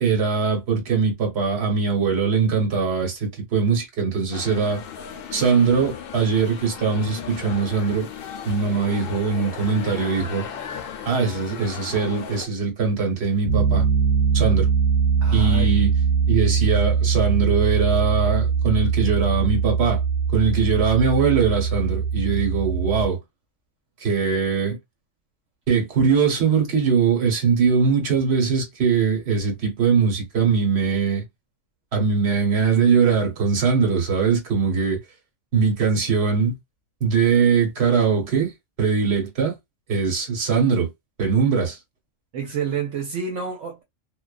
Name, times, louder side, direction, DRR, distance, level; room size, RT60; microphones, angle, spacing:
voice 1, 0.0-4.8 5.3-8.1 8.4-10.5 11.1-13.9 14.3-14.7 15.3-15.9 16.3-20.0 20.3-23.2 24.0-24.8 25.7-31.2 31.9-35.0 35.5-36.5 37.0-38.5 38.8-39.5 39.9-40.9 41.2-41.8, right 5 dB, 55° right, 1.2 m, -21 dB
sound 1, 4.3-12.5, left 8 dB, 65° left, 0.6 m, -36 dB
Piano, 13.5-23.1, right 6 dB, 30° right, 1.1 m, -21 dB
voice 2, 15.2-15.7 16.5-16.6 42.3-43.8, right 6 dB, 80° right, 1.0 m, -29 dB
2.3 x 2.2 x 2.3 m
omnidirectional pair, 1.3 m